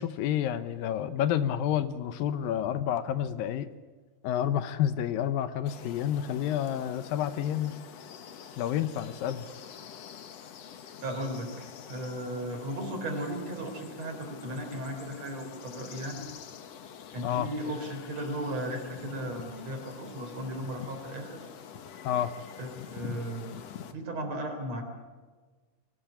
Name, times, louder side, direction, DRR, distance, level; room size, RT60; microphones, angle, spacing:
voice 1, 0.0-3.7 4.2-7.8 8.6-9.5 17.2-17.5 22.0-22.3, left 10 dB, 75° left, 12 dB, 2.6 m, -29 dB
sound 1, 5.7-23.9, left 8 dB, 60° left, 2.0 m, -46 dB
voice 2, 11.0-16.2 17.1-21.5 22.6-23.5 23.9-24.8, right 1 dB, 45° right, 4 dB, 4.7 m, -36 dB
24.0 x 18.0 x 8.6 m, 1.4 s
omnidirectional pair, 4.2 m